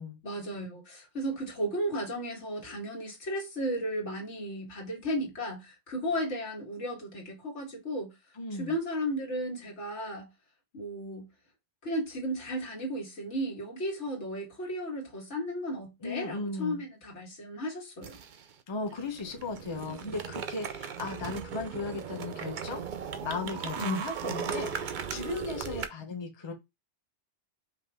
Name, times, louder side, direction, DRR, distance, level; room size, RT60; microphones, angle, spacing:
voice 1, 0.2-8.1 8.5-10.3 10.7-11.3 11.8-18.2 23.8-24.0, equal, 80° left, 2.0 m, -34 dB
voice 2, 8.3-8.7 16.0-16.9 18.7-26.5, left 3 dB, 25° left, 0.7 m, -37 dB
sound 1, 18.0-18.5 18.9-25.9, right 7 dB, 55° right, 0.6 m, -37 dB
5.1 x 2.7 x 3.4 m
omnidirectional pair, 1.2 m